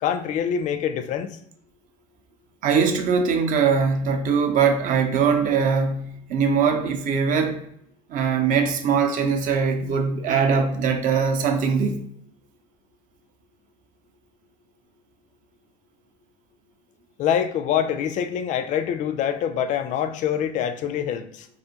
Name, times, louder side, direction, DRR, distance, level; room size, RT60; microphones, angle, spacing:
voice 1, 0.0-1.3 17.2-21.5, left 9 dB, 50° left, 0.4 m, -25 dB
voice 2, 2.6-7.6 8.1-12.0, right 6 dB, 55° right, 0.6 m, -21 dB
2.4 x 2.4 x 2.8 m
supercardioid pair, 95°, 16 cm